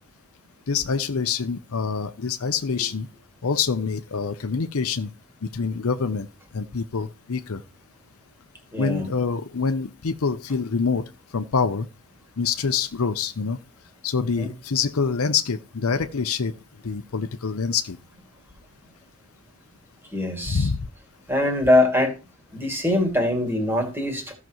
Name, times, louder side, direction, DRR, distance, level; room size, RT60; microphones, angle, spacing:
voice 1, 0.7-3.1 3.4-5.1 5.4-6.3 6.5-7.6 8.8-11.0 11.3-11.9 12.4-13.6 14.0-16.5 16.8-18.0 20.5-20.8, left 5 dB, 75° left, 0.7 m, -25 dB
voice 2, 8.7-9.1 14.4-14.5 20.1-20.7 21.3-22.1 22.5-24.4, left 1 dB, 10° right, 2.3 m, -22 dB
15.5 x 6.0 x 3.0 m
head